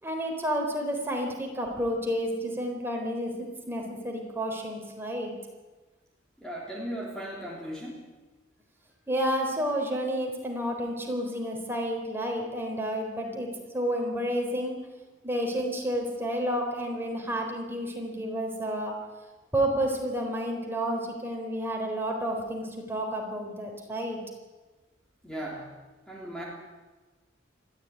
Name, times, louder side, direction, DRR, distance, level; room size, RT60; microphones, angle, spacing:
voice 1, 0.0-5.3 9.1-13.5 13.7-14.8 15.2-18.9 19.5-24.2, equal, 10° right, 1 dB, 4.1 m, -30 dB
voice 2, 6.4-8.1 25.2-26.4, equal, 5° left, -3 dB, 3.2 m, -37 dB
21.0 x 14.5 x 9.4 m, 1.2 s
head